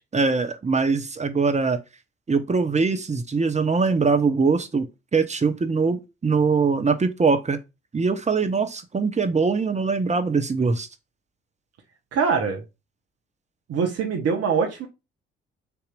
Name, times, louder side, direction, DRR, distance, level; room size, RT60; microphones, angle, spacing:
voice 1, 0.1-1.8 2.3-4.9 5.1-7.6 7.9-10.9, right 4 dB, 20° right, 0.9 m, -22 dB
voice 2, 12.1-12.6 13.7-14.9, right 5 dB, 50° right, 1.0 m, -23 dB
6.8 x 2.9 x 2.4 m
figure-of-eight pair, 40°, 31 cm